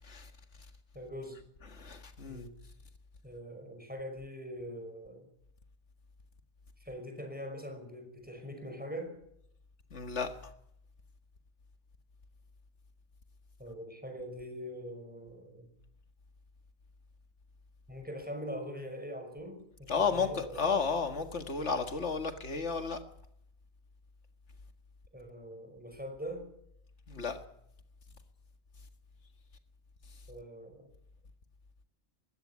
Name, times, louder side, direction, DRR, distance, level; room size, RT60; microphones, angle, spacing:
voice 1, 0.9-1.4 2.2-2.5 3.2-5.3 6.8-9.1 13.6-15.7 17.9-20.9 25.1-26.5 30.3-30.9, equal, 10° right, 5.5 m, -43 dB
voice 2, 1.7-2.4 9.9-10.3 19.9-23.0 27.1-27.4, left 5 dB, 90° left, 2.1 m, -32 dB
21.0 x 16.0 x 9.6 m
omnidirectional pair, 1.2 m